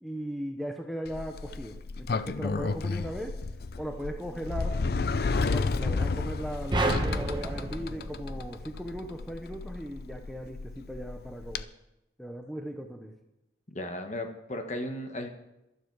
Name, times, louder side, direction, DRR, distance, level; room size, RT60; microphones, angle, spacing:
voice 1, 0.0-3.4 3.8-4.8 5.3-11.7 12.2-13.1, equal, ahead, 4 dB, 0.7 m, -38 dB
Sliding door, 1.1-11.6, left 4 dB, 55° left, 0.5 m, -32 dB
sound 1, 6.7-9.1, right 2 dB, 25° right, 1.1 m, -30 dB
voice 2, 13.7-15.3, left 1 dB, 40° left, 5 dB, 1.3 m, -35 dB
12.5 x 12.0 x 4.7 m, 0.92 s
head